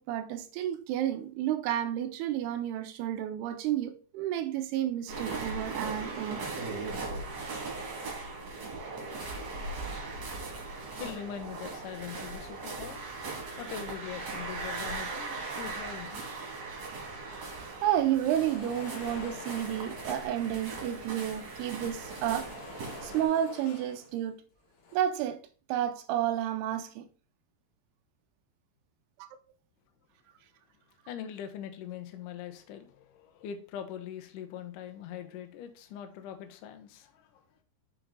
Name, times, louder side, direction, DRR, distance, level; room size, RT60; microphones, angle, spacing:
voice 1, 0.0-6.4 17.8-22.5 23.0-24.4 24.9-25.4 25.7-27.1, right 11 dB, 80° right, 2.5 m, -31 dB
sound 1, 5.1-23.2, right 3 dB, 45° right, 3.4 m, -39 dB
voice 2, 10.8-16.6 31.1-37.6, left 9 dB, 85° left, 1.9 m, -42 dB
sound 2, 18.1-20.6 21.3-24.2 24.6-25.0, left 4 dB, 60° left, 3.1 m, -48 dB
6.8 x 6.0 x 4.0 m
omnidirectional pair, 5.1 m